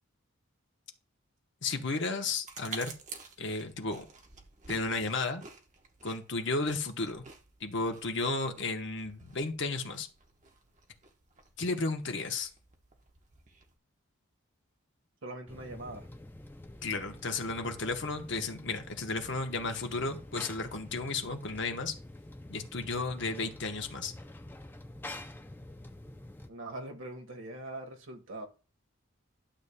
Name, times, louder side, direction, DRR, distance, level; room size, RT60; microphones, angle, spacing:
voice 1, 1.6-2.9 3.4-4.0 4.7-5.4 6.0-7.2 7.6-10.1 11.6-12.5 16.8-21.9 22.5-24.1, left 3 dB, 55° left, 1.0 m, -33 dB
sound 1, 2.5-13.8, right 4 dB, 35° right, 1.0 m, -51 dB
voice 2, 15.2-16.1 26.5-28.5, right 2 dB, 70° right, 1.4 m, -42 dB
sound 2, 15.5-26.5, left 1 dB, 10° left, 0.4 m, -47 dB
11.5 x 6.9 x 2.2 m
head